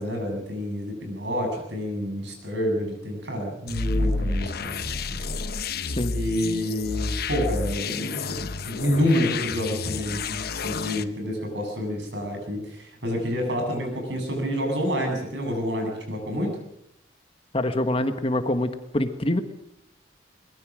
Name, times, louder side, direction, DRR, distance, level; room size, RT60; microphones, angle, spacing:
voice 1, 0.0-5.4 6.1-16.6, equal, 65° right, 3 dB, 7.9 m, -28 dB
sound 1, 3.7-11.0, left 3 dB, 55° left, 1.0 m, -30 dB
voice 2, 17.5-19.4, left 1 dB, 30° left, 8 dB, 1.4 m, -25 dB
23.5 x 21.0 x 6.3 m, 0.79 s
head